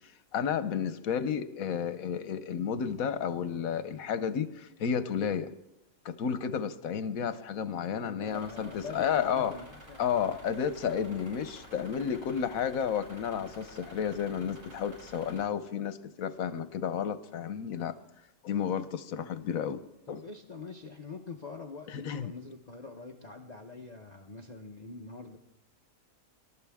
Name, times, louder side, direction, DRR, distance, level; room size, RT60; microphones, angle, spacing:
voice 1, 0.3-5.5 6.0-9.5 10.0-18.0 18.4-19.8 20.1-20.2 21.9-22.3, left 7 dB, 80° left, 12 dB, 1.3 m, -32 dB
voice 2, 8.0-10.4 20.1-25.4, left 4 dB, 35° left, 2 dB, 0.9 m, -45 dB
sound 1, 8.3-15.4, equal, 70° right, 7.7 m, -51 dB
26.0 x 12.5 x 3.6 m, 0.90 s
omnidirectional pair, 1.4 m